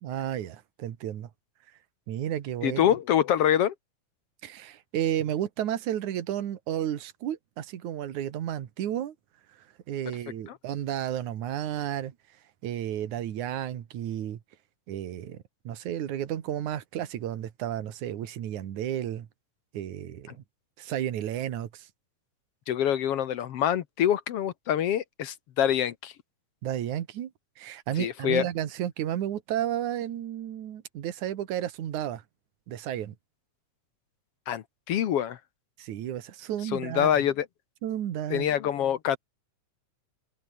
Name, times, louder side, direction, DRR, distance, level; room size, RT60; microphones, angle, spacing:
voice 1, 0.0-1.3 2.1-2.9 4.4-9.1 9.9-12.1 12.6-14.4 14.9-15.4 15.6-19.3 19.7-20.4 20.8-21.9 26.6-27.3 27.6-32.2 32.7-33.1 35.8-37.1 37.8-38.5, right 11 dB, 70° right, 3.0 m, -32 dB
voice 2, 2.6-3.7 10.5-10.6 22.7-26.1 28.0-28.5 34.5-35.4 36.7-37.5 38.3-39.2, left 10 dB, 60° left, 1.8 m, -25 dB
omnidirectional pair, 3.6 m